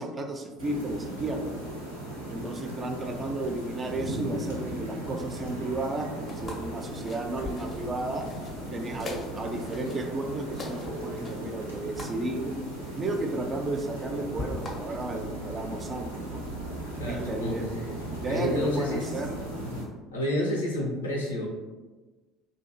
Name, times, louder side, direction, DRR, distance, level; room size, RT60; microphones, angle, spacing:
voice 1, 0.0-1.5 2.3-8.3 8.7-12.5 13.0-16.5 17.1-17.7 18.2-19.4, right 2 dB, 30° right, 4 dB, 0.4 m, -33 dB
sound 1, 0.6-19.9, right 1 dB, 90° right, 0.5 m, -37 dB
sound 2, 6.3-14.7, left 3 dB, 35° left, 0.5 m, -43 dB
voice 2, 17.0-18.0 18.3-19.1 20.1-21.5, left 1 dB, 80° left, -1 dB, 0.5 m, -30 dB
2.5 x 2.2 x 2.9 m, 1.2 s
figure-of-eight pair, 60°, 0 cm